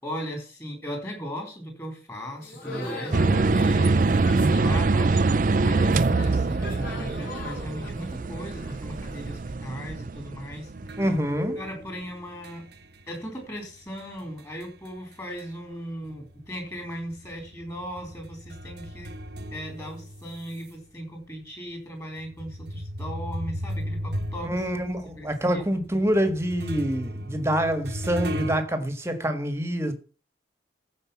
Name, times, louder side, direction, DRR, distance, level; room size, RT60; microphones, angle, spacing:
voice 1, 0.0-4.0 4.6-11.0 11.5-12.6 13.1-19.1 19.4-24.7 25.1-25.8, equal, 20° left, 4.0 m, -38 dB
sound 1, 2.4-9.4, left 1 dB, 50° left, 7.7 m, -39 dB
sound 2, 3.1-11.2, right 3 dB, 45° right, 0.5 m, -24 dB
sound 3, 10.7-15.7 16.0-20.7 21.3-21.4 22.2-28.6, equal, 60° right, 1.1 m, -36 dB
voice 2, 11.0-11.6 24.4-29.9, equal, 15° right, 1.6 m, -26 dB
14.5 x 5.2 x 7.1 m
head